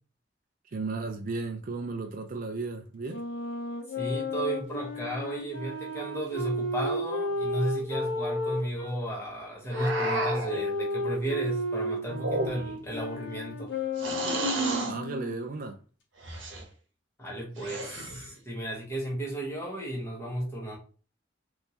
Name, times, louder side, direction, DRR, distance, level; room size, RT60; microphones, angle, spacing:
voice 1, 0.7-3.2 14.9-15.8, right 3 dB, 45° right, 0.4 m, -34 dB
Wind instrument woodwind instrument, 3.1-8.9 9.7-15.5, left 1 dB, 75° left, 0.9 m, -33 dB
voice 2, 4.0-13.7 17.2-20.8, right 1 dB, 15° left, 1.1 m, -34 dB
sound 1, 9.7-10.6 12.1-12.9 14.0-15.0 16.2-16.6 17.6-18.3, right 2 dB, 75° right, 0.9 m, -31 dB
3.5 x 2.6 x 2.8 m
head